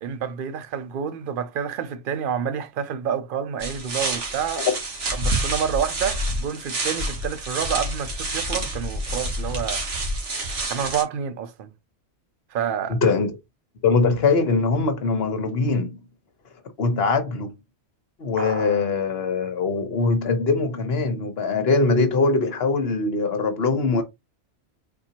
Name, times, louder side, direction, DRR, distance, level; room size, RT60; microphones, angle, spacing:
voice 1, 0.0-4.7 5.1-9.8 10.7-11.7 12.5-13.0, right 8 dB, 55° right, 0.7 m, -28 dB
sound 1, 3.6-11.0, right 1 dB, 75° right, 1.7 m, -28 dB
voice 2, 12.9-13.4 13.8-16.0 16.8-17.5 18.2-24.0, left 4 dB, 60° left, 1.1 m, -22 dB
sound 2, 18.4-18.9, right 1 dB, 20° right, 0.4 m, -32 dB
4.3 x 3.9 x 2.9 m
omnidirectional pair, 1.2 m